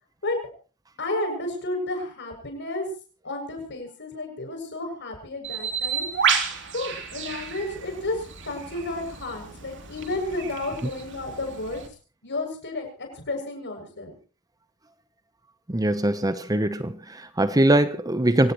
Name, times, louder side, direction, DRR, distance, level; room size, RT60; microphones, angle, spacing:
voice 1, 1.0-2.9 3.2-6.1 6.7-11.8 12.2-14.2, left 2 dB, 55° left, 7.3 m, -32 dB
Bird, 5.4-11.9, right 6 dB, 55° right, 3.2 m, -31 dB
voice 2, 15.7-18.5, right 1 dB, 15° right, 0.9 m, -22 dB
25.0 x 18.0 x 3.1 m
head